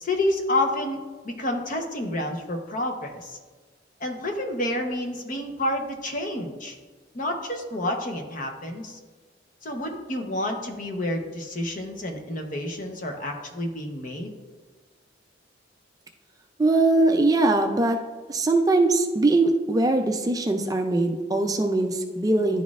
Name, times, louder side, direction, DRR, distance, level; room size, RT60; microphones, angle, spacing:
voice 1, 0.0-1.0 1.2-3.4 4.0-6.8 7.1-9.0 9.6-14.3, left 1 dB, 45° left, 3 dB, 0.8 m, -29 dB
voice 2, 16.6-18.0 18.3-22.6, right 2 dB, 20° right, 5 dB, 0.4 m, -21 dB
10.5 x 4.1 x 2.4 m, 1.4 s
head